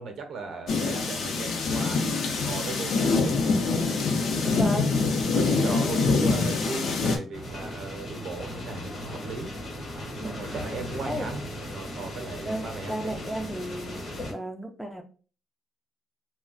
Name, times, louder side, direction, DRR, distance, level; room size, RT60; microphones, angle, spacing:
voice 1, 0.0-3.5 3.9-4.7 5.3-9.6 9.9-13.2, right 4 dB, 60° right, 5 dB, 0.7 m, -37 dB
sound 1, 0.7-7.2, left 4 dB, 60° left, 0.6 m, -25 dB
voice 2, 4.6-4.9 5.6-6.0 10.2-10.6 11.0-11.3 12.4-15.0, right 1 dB, 5° left, 3 dB, 0.4 m, -34 dB
sound 2, 7.3-14.3, left 1 dB, 45° left, 1.0 m, -37 dB
2.3 x 2.1 x 3.8 m, 0.38 s
cardioid pair, 145°, 0 cm